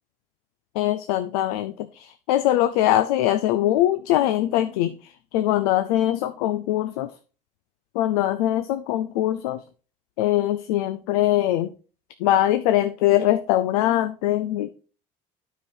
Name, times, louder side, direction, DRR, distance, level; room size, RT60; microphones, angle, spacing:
voice 1, 0.8-5.0 5.3-7.1 7.9-9.6 10.2-11.7 12.2-14.7, left 13 dB, 80° left, 11 dB, 0.5 m, -22 dB
9.1 x 5.0 x 4.3 m, 0.36 s
hypercardioid pair, 65°, 19 cm